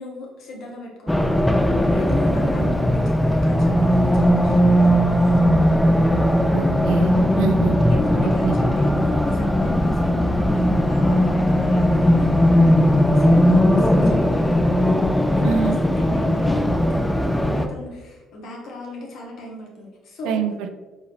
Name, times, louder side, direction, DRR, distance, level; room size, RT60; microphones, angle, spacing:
voice 1, 0.0-5.3 7.3-7.5 7.9-20.4, left 2 dB, 65° left, -2 dB, 1.2 m, -36 dB
Race car auto racing, 1.1-17.7, equal, 5° left, 0.3 m, -18 dB
voice 2, 6.5-7.8 8.4-8.5 15.4-15.7 20.3-20.7, right 5 dB, 80° right, 7 dB, 0.4 m, -24 dB
4.8 x 2.7 x 3.3 m, 1.2 s
supercardioid pair, 75°, 0 cm